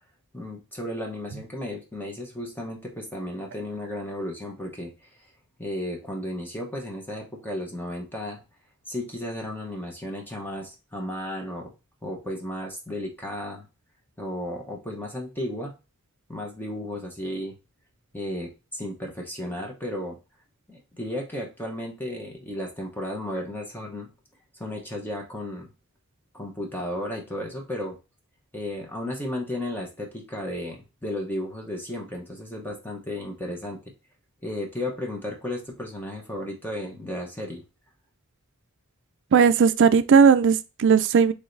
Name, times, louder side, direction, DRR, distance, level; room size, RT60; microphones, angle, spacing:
voice 1, 0.3-5.3 5.6-8.4 8.9-11.7 12.0-13.7 14.2-15.7 16.3-17.5 18.1-20.2 20.7-24.1 24.6-25.7 26.3-28.0 28.5-33.9 34.4-37.6, left 1 dB, 10° left, 0.9 m, -34 dB
voice 2, 39.3-41.3, right 6 dB, 55° right, 0.4 m, -17 dB
4.8 x 3.4 x 2.6 m
head